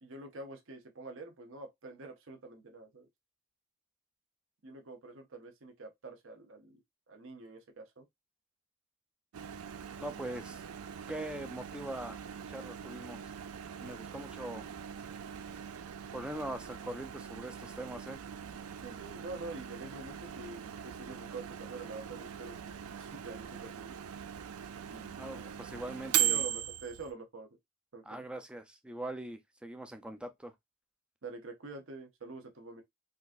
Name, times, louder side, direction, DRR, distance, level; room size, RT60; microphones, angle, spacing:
voice 1, 0.0-3.1 4.6-6.8 7.1-8.1 18.8-24.0 24.8-25.5 26.3-27.5 27.9-28.2 31.2-32.8, right 3 dB, 60° right, 0.7 m, -46 dB
Microwave oven, 9.3-27.1, right 10 dB, 85° right, 0.4 m, -40 dB
voice 2, 10.0-10.6 11.1-12.2 12.5-13.2 13.8-14.7 16.1-18.2 25.2-26.4 28.1-30.5, right 1 dB, 5° right, 0.4 m, -42 dB
3.8 x 2.4 x 2.5 m
head